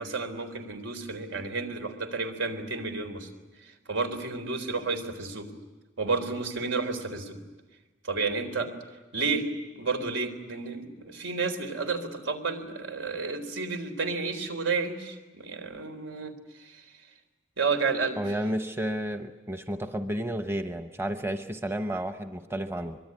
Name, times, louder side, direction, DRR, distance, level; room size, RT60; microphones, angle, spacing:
voice 1, 0.0-3.3 3.6-5.5 6.0-7.4 8.0-8.7 9.1-9.5 9.7-16.9 17.6-18.3, right 4 dB, 85° right, 7 dB, 3.9 m, -31 dB
voice 2, 18.2-23.0, right 1 dB, 10° right, 8 dB, 0.9 m, -31 dB
24.5 x 23.0 x 9.8 m, 1.2 s
head